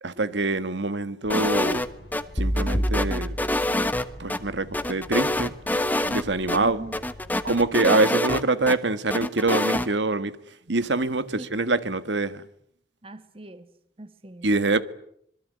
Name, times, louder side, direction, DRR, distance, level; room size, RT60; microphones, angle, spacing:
voice 1, 0.0-1.8 2.3-3.4 4.2-5.5 6.1-6.8 7.4-10.3 10.7-12.4 14.4-14.8, right 2 dB, 85° right, 1.7 m, -25 dB
sound 1, 1.2-7.7, left 1 dB, 80° left, 5.0 m, -46 dB
sound 2, 1.3-2.2 2.6-4.4 4.7-6.2 6.5-6.6 6.9-8.8 9.1-9.9, left 1 dB, 10° left, 1.3 m, -26 dB
sound 3, 2.4-4.6, equal, 25° left, 1.8 m, -28 dB
voice 2, 6.6-7.0 7.7-8.1 11.3-11.5 13.0-13.7 14.0-14.5, right 1 dB, 30° right, 1.5 m, -39 dB
26.5 x 23.0 x 9.5 m
head